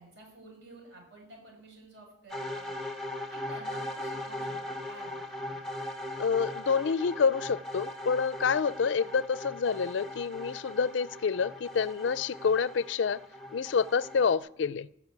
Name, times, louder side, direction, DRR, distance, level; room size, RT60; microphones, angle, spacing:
voice 1, 0.0-2.7 3.3-5.1 5.4-5.7, right 1 dB, 60° right, 0 dB, 6.1 m, -50 dB
sound 1, 2.3-14.4, left 1 dB, 5° left, 1.1 m, -39 dB
voice 2, 6.2-13.2 13.5-14.9, left 5 dB, 65° left, 20 dB, 0.4 m, -28 dB
15.0 x 6.3 x 9.4 m, 0.74 s
head